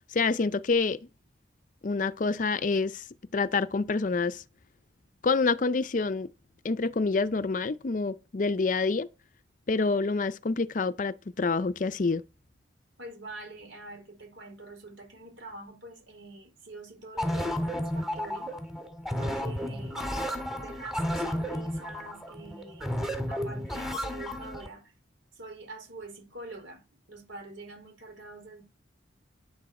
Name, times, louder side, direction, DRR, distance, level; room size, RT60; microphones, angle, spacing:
voice 1, 0.1-1.0 1.8-3.1 3.3-4.4 5.2-6.3 6.6-9.1 9.7-12.2, left 4 dB, 40° left, 0.5 m, -27 dB
voice 2, 13.0-18.5 19.2-20.1 20.6-22.9 23.3-24.8 25.3-26.8 27.1-28.6, right 2 dB, 80° right, 4.6 m, -45 dB
sound 1, 17.2-24.7, equal, ahead, 1.7 m, -32 dB
10.5 x 9.2 x 4.2 m
head